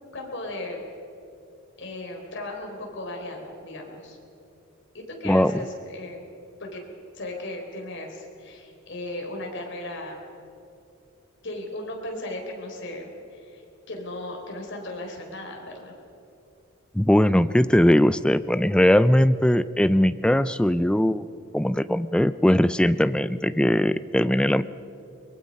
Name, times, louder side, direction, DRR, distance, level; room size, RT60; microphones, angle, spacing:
voice 1, 0.1-0.8 1.8-4.2 4.9-6.2 6.6-6.8 7.1-10.2 11.4-15.9, left 1 dB, 60° left, 1 dB, 3.9 m, -36 dB
voice 2, 16.9-21.3 21.5-24.6, left 1 dB, 5° left, 14 dB, 0.4 m, -20 dB
23.0 x 21.0 x 5.4 m, 2.8 s
head